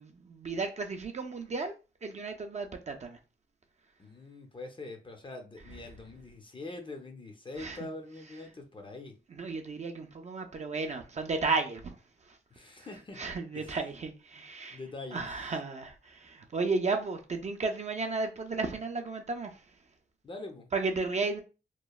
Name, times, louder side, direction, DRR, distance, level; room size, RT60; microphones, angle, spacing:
voice 1, 0.0-1.7 2.0-3.2 7.6-7.8 9.4-12.0 13.2-14.8 15.1-19.5 20.7-21.4, right 3 dB, 35° right, 0.4 m, -33 dB
voice 2, 4.0-9.1 12.5-13.2 13.5-13.8 14.7-15.5 20.2-20.7, left 2 dB, 25° left, 0.5 m, -44 dB
2.9 x 2.1 x 2.3 m
wide cardioid pair, 120°, 19 cm